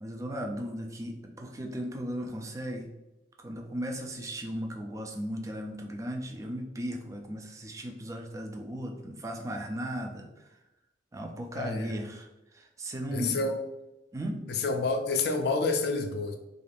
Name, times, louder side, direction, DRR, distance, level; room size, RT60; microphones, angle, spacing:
voice 1, 0.0-2.9 3.4-10.6 11.1-13.4 14.1-14.4, equal, 15° right, 3 dB, 0.3 m, -36 dB
voice 2, 11.5-11.9 13.1-13.6 14.5-16.3, left 3 dB, 60° left, 5 dB, 0.4 m, -28 dB
2.4 x 2.4 x 3.3 m, 0.97 s
head